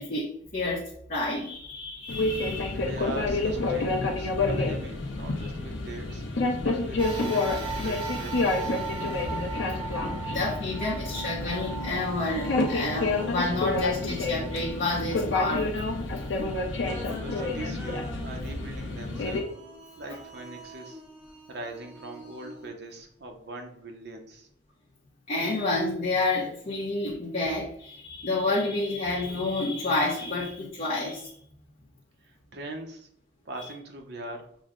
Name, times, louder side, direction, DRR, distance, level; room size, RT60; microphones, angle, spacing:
voice 1, 0.0-2.9 3.7-4.1 4.4-4.8 5.4-5.5 10.0-15.7 20.1-20.2 25.3-31.3 33.6-33.7, left 2 dB, 40° left, -5 dB, 0.7 m, -30 dB
sound 1, 2.1-19.4, left 2 dB, 85° left, 0.7 m, -29 dB
voice 2, 2.7-6.2 6.6-8.9 16.8-19.6 20.0-21.0 21.5-24.5 32.2-33.1 33.4-34.5, right 2 dB, 60° right, 3 dB, 0.7 m, -41 dB
sound 2, 7.0-15.6 16.2-16.3 17.4-17.5, right 5 dB, 30° right, 1.0 m, -39 dB
sound 3, 11.1-15.6 16.8-22.7, equal, 5° right, 1.1 m, -43 dB
6.2 x 2.1 x 3.6 m, 0.66 s
head